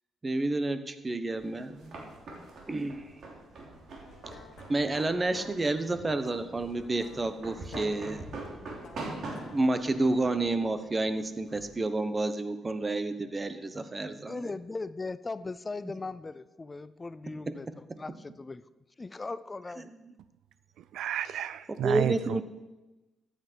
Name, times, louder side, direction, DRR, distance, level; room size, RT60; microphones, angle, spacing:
voice 1, 0.2-2.0 2.7-3.1 4.7-8.2 9.5-14.5 21.8-22.4, right 2 dB, 25° right, 1.0 m, -30 dB
sound 1, 1.3-11.8, right 2 dB, 60° right, 3.2 m, -44 dB
sound 2, 4.1-9.6, left 4 dB, 75° left, 1.4 m, -50 dB
voice 2, 14.3-17.7 18.0-18.7 19.0-19.9, left 3 dB, 25° left, 0.4 m, -38 dB
voice 3, 20.8-22.4, right 10 dB, 80° right, 0.4 m, -32 dB
14.5 x 8.7 x 4.6 m
cardioid pair, 90°, 0 cm